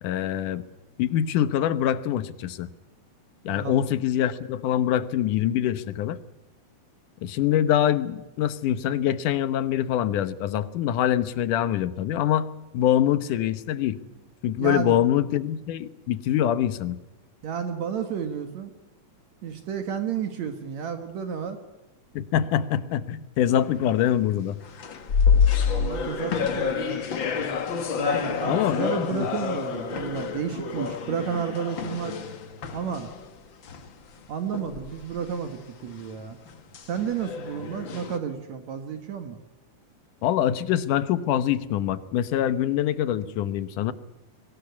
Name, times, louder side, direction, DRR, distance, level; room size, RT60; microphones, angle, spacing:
voice 1, 0.0-0.6 1.0-2.7 3.5-6.2 7.2-12.5 12.7-14.0 14.4-17.0 22.2-24.6 28.5-29.3 40.2-43.9, left 11 dB, 85° left, 14 dB, 2.6 m, -24 dB
voice 2, 3.5-3.8 14.6-15.0 17.4-18.7 19.4-21.6 25.7-27.0 28.0-32.2 32.7-33.1 34.3-36.4 36.8-39.4, right 7 dB, 65° right, 7 dB, 2.6 m, -31 dB
sound 1, 23.4-24.2 24.6-33.4 33.6-33.9 34.5-35.3 35.8-38.2, left 6 dB, 45° left, 1.9 m, -28 dB
23.0 x 18.5 x 8.4 m, 1.0 s
omnidirectional pair, 3.6 m